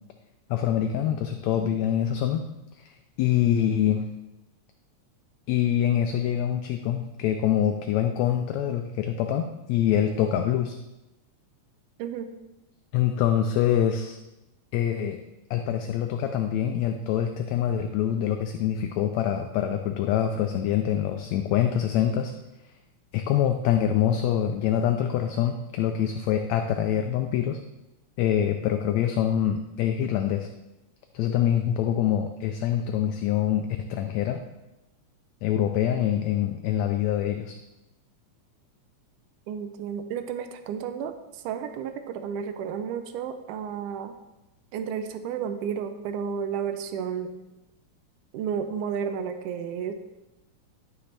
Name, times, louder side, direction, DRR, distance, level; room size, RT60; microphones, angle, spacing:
voice 1, 0.5-2.4 2.7-2.9 3.2-4.1 5.5-10.8 12.9-14.2 14.7-15.2 15.5-22.3 23.1-27.6 28.2-30.5 31.1-34.4 35.4-37.6, left 10 dB, 80° left, 6 dB, 1.6 m, -25 dB
voice 2, 12.0-12.3 39.5-44.1 44.7-47.3 48.3-49.9, right 7 dB, 90° right, 8 dB, 2.1 m, -32 dB
12.0 x 5.8 x 3.3 m, 0.99 s
omnidirectional pair, 3.5 m